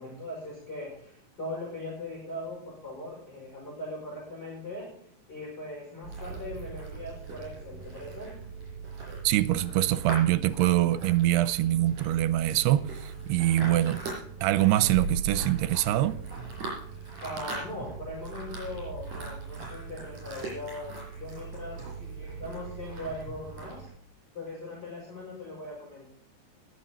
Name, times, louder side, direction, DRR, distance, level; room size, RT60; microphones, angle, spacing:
voice 1, 0.0-4.9 5.3-8.3 17.2-23.9 24.3-26.0, left 1 dB, 25° left, 5.6 m, -40 dB
sound 1, 6.0-23.9, right 4 dB, 45° right, 6.9 m, -39 dB
voice 2, 9.2-14.0 14.4-16.2, right 14 dB, 85° right, 2.7 m, -24 dB
21.0 x 8.1 x 4.3 m
omnidirectional pair, 4.7 m